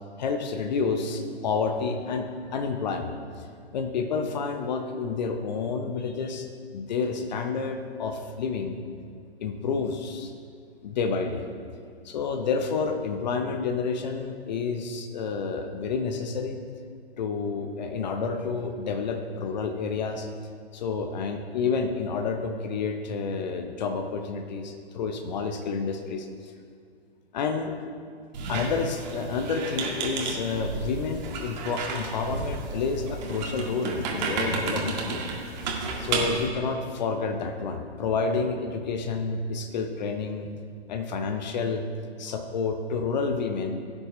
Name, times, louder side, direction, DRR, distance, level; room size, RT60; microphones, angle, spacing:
voice 1, 0.2-3.1 3.7-6.5 6.7-8.8 9.4-10.3 10.8-11.4 12.0-16.6 17.2-20.3 20.7-26.5 27.3-27.7 28.5-35.2 36.0-40.5 40.9-41.9 42.2-43.8, left 4 dB, 40° left, 6 dB, 0.9 m, -29 dB
Squeak, 28.3-36.5, right 3 dB, 40° right, 2.0 m, -32 dB
16.0 x 9.0 x 3.2 m, 2.3 s
figure-of-eight pair, 120°, 32 cm